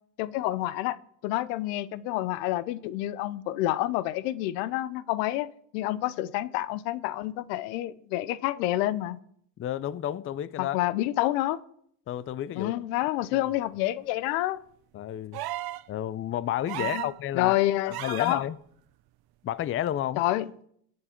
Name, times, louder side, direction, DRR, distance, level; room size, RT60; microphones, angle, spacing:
voice 1, 0.2-1.0 1.2-9.2 10.6-11.6 12.6-14.6 16.8-18.4 20.2-20.5, left 15 dB, 85° left, 0.8 m, -28 dB
voice 2, 9.6-10.8 12.1-12.7 13.3-13.5 14.9-15.4 15.9-17.6 17.8-18.6 19.4-20.2, left 11 dB, 30° left, 0.4 m, -31 dB
sound 1, 15.3-15.9 16.7-17.2 17.9-18.4 19.9-20.0, right 15 dB, 50° right, 0.6 m, -34 dB
19.5 x 6.7 x 4.4 m
supercardioid pair, 90°, 48 cm